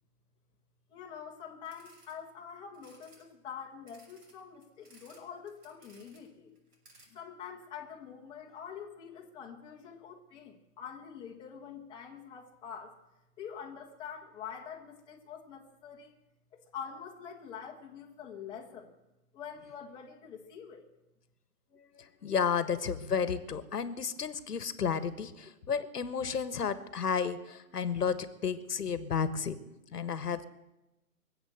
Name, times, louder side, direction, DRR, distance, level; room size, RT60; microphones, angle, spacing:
voice 1, 0.9-6.5 7.1-13.0 13.4-16.1 16.5-18.9 19.3-20.9, left 7 dB, 10° left, -1 dB, 1.3 m, -45 dB
sound 1, 1.6-2.1 2.7-3.2 3.9-5.2 5.5-6.3 6.5-7.1, right 2 dB, 75° right, 6.1 m, -60 dB
voice 2, 21.7-29.6 29.9-30.4, left 6 dB, 80° left, 13 dB, 1.4 m, -32 dB
23.0 x 7.9 x 7.9 m, 0.97 s
hypercardioid pair, 155°, 46 cm